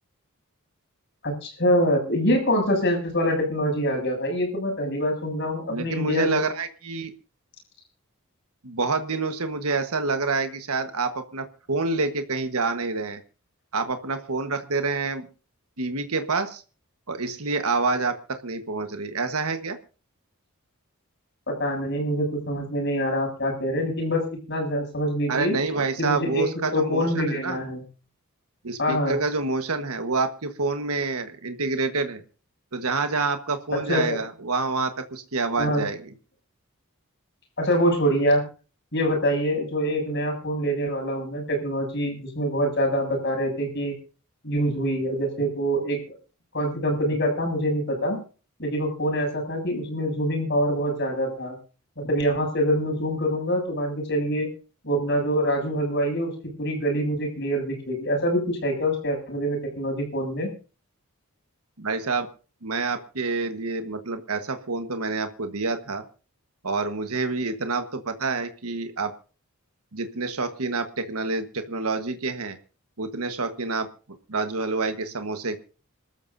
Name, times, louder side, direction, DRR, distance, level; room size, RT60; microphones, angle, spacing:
voice 1, 1.2-6.4 21.5-25.6 26.0-26.4 26.7-27.8 28.8-29.2 33.7-34.2 35.6-35.8 37.6-38.4 38.9-43.9 44.4-46.0 46.5-48.2 48.6-51.6 52.0-54.5 54.8-56.3 56.6-60.5, equal, 50° left, 2 dB, 7.5 m, -25 dB
voice 2, 5.7-7.1 8.6-13.2 13.7-15.3 15.8-16.6 17.1-18.1 18.4-19.8 25.3-27.6 28.6-32.2 32.7-36.1 61.8-62.3 62.6-66.0 66.6-69.1 69.9-72.6 73.0-73.9 74.3-75.6, right 3 dB, 80° right, 8 dB, 1.4 m, -27 dB
27.0 x 13.5 x 2.7 m, 0.36 s
head